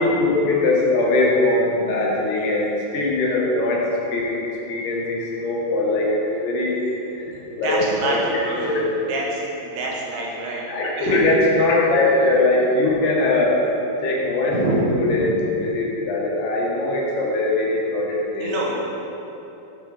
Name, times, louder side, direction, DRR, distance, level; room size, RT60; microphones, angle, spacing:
voice 1, 0.0-3.8 4.1-6.8 7.1-7.2 7.6-8.9 10.7-13.6 14.0-15.3 15.5-18.5, left 2 dB, 75° left, -3 dB, 3.3 m, -21 dB
voice 2, 2.4-2.7 7.6-10.6 10.9-11.2 14.5-14.8 15.1-15.3 18.4-18.7, right 2 dB, 75° right, -3 dB, 3.0 m, -27 dB
9.6 x 5.4 x 4.8 m, 3.0 s
omnidirectional pair, 4.7 m